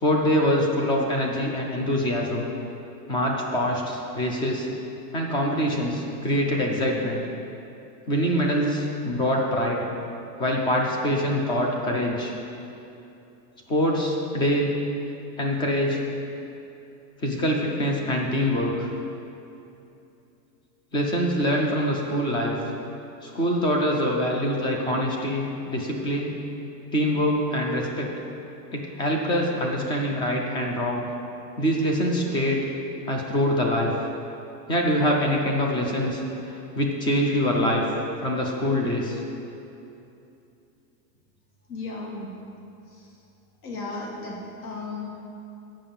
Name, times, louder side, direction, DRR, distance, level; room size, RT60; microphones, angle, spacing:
voice 1, 0.0-2.5 3.1-4.7 5.1-7.2 8.1-9.8 10.4-12.3 13.7-14.7 15.4-16.0 17.2-18.9 20.9-22.6 23.2-26.4 26.9-28.1 28.7-31.1 31.6-32.6 33.1-33.9 34.7-37.8 38.2-39.2, equal, 10° left, 0 dB, 0.3 m, -24 dB
voice 2, 41.7-42.3 42.9-43.0 43.6-45.1, left 3 dB, 65° left, -2 dB, 1.8 m, -35 dB
7.4 x 5.7 x 7.0 m, 2.8 s
supercardioid pair, 145°, 48 cm